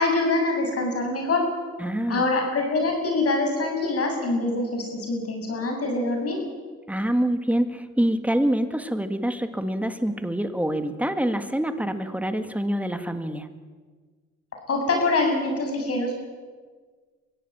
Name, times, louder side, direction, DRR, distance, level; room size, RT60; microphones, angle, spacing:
voice 1, 0.0-1.4 2.1-6.4 14.7-16.1, left 2 dB, 50° left, 2 dB, 7.7 m, -24 dB
voice 2, 1.8-2.3 6.9-13.5, right 1 dB, 5° right, 8 dB, 1.9 m, -26 dB
24.0 x 16.0 x 8.8 m, 1.5 s
cardioid pair, 90°, 30 cm